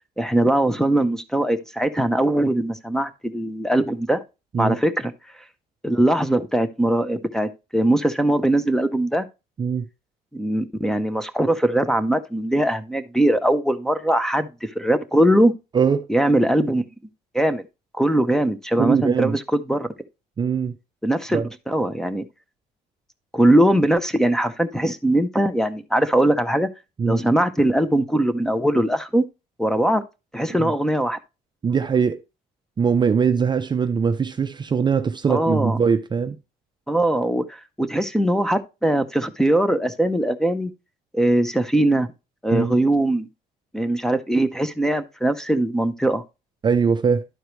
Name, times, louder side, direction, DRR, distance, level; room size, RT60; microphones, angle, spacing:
voice 1, 0.2-4.2 4.6-5.1 5.8-9.3 10.3-15.5 16.1-16.8 17.3-17.6 18.0-19.9 21.0-21.4 21.7-22.2 23.3-26.7 27.0-29.2 29.6-30.0 30.3-31.2 35.3-35.8 36.9-40.7 41.1-42.1 42.4-43.3 43.7-46.2, right 1 dB, 5° left, 0.7 m, -21 dB
voice 2, 15.7-16.1 18.8-19.4 20.4-20.7 21.3-21.5 27.0-27.2 30.6-30.7 31.6-32.2 32.8-36.4 42.5-42.8 46.6-47.3, right 6 dB, 25° right, 0.5 m, -21 dB
11.5 x 4.7 x 3.1 m
cardioid pair, 110°, 17 cm